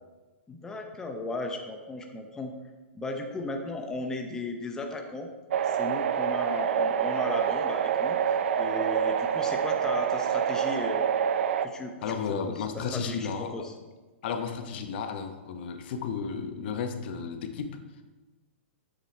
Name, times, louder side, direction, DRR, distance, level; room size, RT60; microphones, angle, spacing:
voice 1, 0.5-2.5 2.9-5.3 5.6-8.2 8.6-11.1 11.6-12.1 12.4-13.7, left 2 dB, 10° left, 3 dB, 0.7 m, -36 dB
sound 1, 5.5-11.7, right 8 dB, 70° right, 0.5 m, -27 dB
voice 2, 12.0-13.7 14.2-17.8, left 6 dB, 55° left, 7 dB, 0.8 m, -33 dB
7.5 x 7.5 x 4.3 m, 1.2 s
hypercardioid pair, 150°, 7 cm